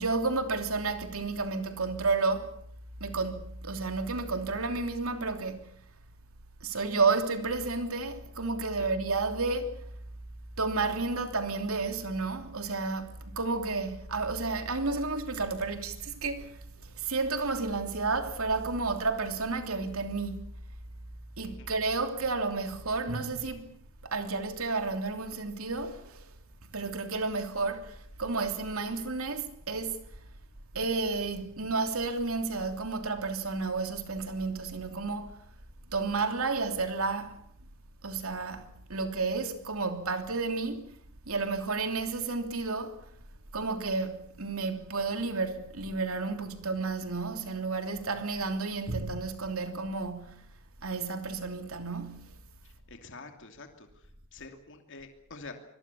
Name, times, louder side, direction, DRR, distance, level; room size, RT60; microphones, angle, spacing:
voice 1, 0.0-2.5 3.0-5.7 6.6-9.9 10.6-20.5 21.4-23.7 24.0-26.3 26.6-30.2 30.7-35.4 35.9-37.4 38.0-40.9 41.3-43.1 43.5-50.5 50.8-52.4, right 3 dB, 70° right, 3.1 m, -31 dB
voice 2, 21.4-21.7 52.9-55.5, left 3 dB, 55° left, 2.8 m, -47 dB
25.0 x 22.0 x 7.0 m
head